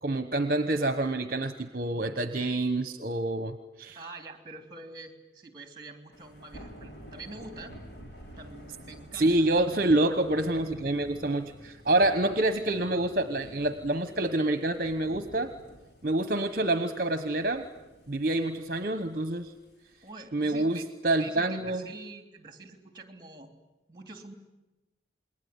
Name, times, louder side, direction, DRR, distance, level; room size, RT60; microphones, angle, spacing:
voice 1, 0.0-4.0 9.2-15.5 16.0-17.7 18.1-19.5 20.3-21.8, right 2 dB, 50° right, 9 dB, 1.1 m, -27 dB
voice 2, 3.9-7.8 8.4-9.5 20.0-20.9 21.1-23.5 23.9-24.3, right 3 dB, 25° right, 6 dB, 3.1 m, -45 dB
Thunder / Rain, 6.1-20.1, equal, 70° left, 5.1 m, -50 dB
28.0 x 21.5 x 9.8 m, 1.1 s
head